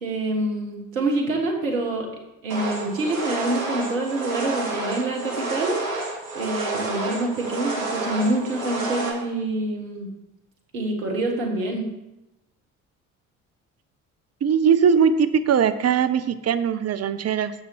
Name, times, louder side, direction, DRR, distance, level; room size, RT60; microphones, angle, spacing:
voice 1, 0.0-2.1 2.4-5.8 6.3-10.1 10.7-11.9, right 2 dB, 85° right, 1 dB, 1.6 m, -26 dB
sound 1, 2.5-9.1, right 2 dB, 65° right, 2.7 m, -29 dB
voice 2, 14.4-17.5, right 7 dB, 40° right, 11 dB, 0.8 m, -20 dB
9.7 x 6.8 x 4.6 m, 0.95 s
hypercardioid pair, 50°, 40 cm